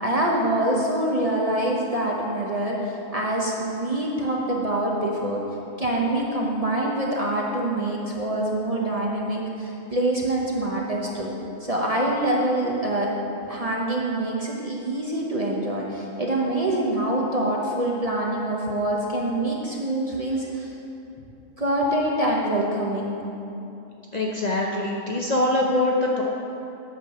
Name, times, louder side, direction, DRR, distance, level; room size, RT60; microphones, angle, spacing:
voice 1, 0.0-5.4 5.8-11.3 11.6-13.1 13.5-20.8 21.6-23.1, right 1 dB, 35° right, -2 dB, 0.8 m, -25 dB
voice 2, 24.1-26.2, left 2 dB, 40° left, -2 dB, 0.7 m, -23 dB
8.5 x 5.3 x 6.5 m, 2.8 s
omnidirectional pair, 1.3 m